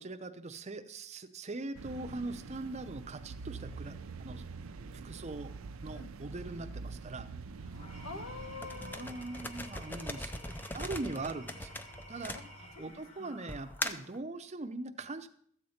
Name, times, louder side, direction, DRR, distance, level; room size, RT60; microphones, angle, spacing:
voice 1, 0.0-4.4 4.9-5.5 5.8-7.3 8.8-11.7 12.1-12.4 12.8-15.3, right 2 dB, 35° right, 9 dB, 0.6 m, -41 dB
sound 1, 1.7-10.0, right 4 dB, 80° right, 0.5 m, -45 dB
voice 2, 7.6-9.1 10.6-10.7 12.3-12.4 12.7-13.3, left 4 dB, 65° left, 4 dB, 1.4 m, -46 dB
Engine / Tools, 7.7-14.1, equal, 35° left, 4.3 m, -52 dB
sound 2, 8.6-12.9 13.5-14.2, left 1 dB, 10° left, 0.5 m, -40 dB
13.5 x 7.8 x 4.3 m, 0.64 s
head